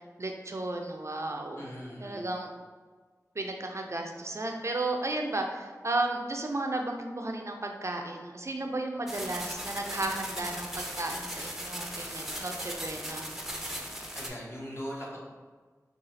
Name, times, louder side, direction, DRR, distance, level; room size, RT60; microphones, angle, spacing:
voice 1, 0.2-1.6 2.0-2.5 3.4-13.3, right 2 dB, 50° right, 3 dB, 0.4 m, -34 dB
voice 2, 1.5-2.3 14.1-15.2, equal, 40° left, -5 dB, 1.2 m, -40 dB
sound 1, 9.1-14.3, equal, 5° right, 0.6 m, -38 dB
3.9 x 2.4 x 3.9 m, 1.4 s
wide cardioid pair, 50°, 6 cm